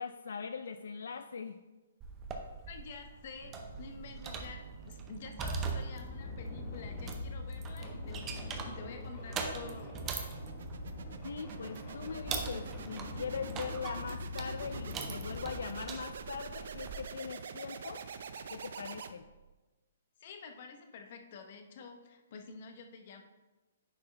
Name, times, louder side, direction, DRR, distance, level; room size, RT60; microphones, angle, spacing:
voice 1, 0.0-1.6 11.2-18.1 18.5-19.3, left 6 dB, 80° left, 9 dB, 0.3 m, -41 dB
sound 1, 2.0-17.0, right 4 dB, 15° right, 0.6 m, -42 dB
voice 2, 2.7-10.0 20.2-23.2, left 5 dB, 45° left, 5 dB, 0.8 m, -49 dB
sound 2, 3.4-19.5, right 6 dB, 60° right, 0.4 m, -47 dB
sound 3, 5.9-15.4, left 3 dB, 20° left, 1.2 m, -44 dB
9.6 x 4.4 x 3.3 m, 1.2 s
hypercardioid pair, 165°, 0 cm